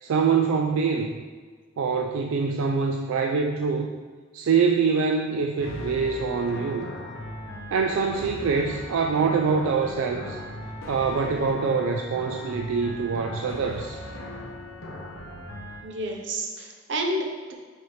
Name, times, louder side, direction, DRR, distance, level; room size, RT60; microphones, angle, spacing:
voice 1, 0.0-1.1 1.8-3.9 4.3-6.9 7.7-10.4 10.9-14.0, right 5 dB, 75° right, 4 dB, 0.4 m, -24 dB
sound 1, 5.6-15.8, left 1 dB, 70° left, 1.1 m, -38 dB
voice 2, 15.8-17.5, right 1 dB, 60° right, 2 dB, 0.7 m, -30 dB
6.5 x 4.9 x 3.2 m, 1.5 s
head